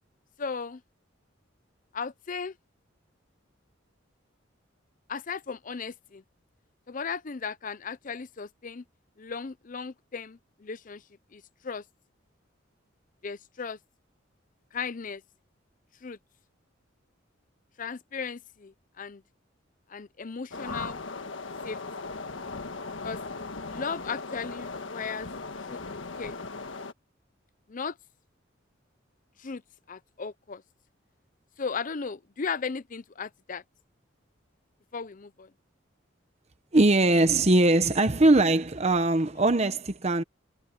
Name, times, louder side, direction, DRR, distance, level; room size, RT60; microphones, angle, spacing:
voice 1, 0.4-0.8 1.9-2.6 5.1-6.2 6.9-8.8 9.2-11.0 11.3-11.8 13.2-13.8 14.7-15.2 16.0-16.2 17.8-19.2 19.9-21.0 21.6-22.1 23.0-23.2 23.7-25.3 25.7-25.8 26.2-26.3 27.7-28.0 29.4-29.6 29.9-30.6 31.6-33.6 34.9-35.5, left 5 dB, 45° left, 0.6 m, -36 dB
sound 1, 20.5-26.9, left 3 dB, 80° left, 1.5 m, -38 dB
voice 2, 36.7-40.2, right 2 dB, 35° right, 0.9 m, -21 dB
head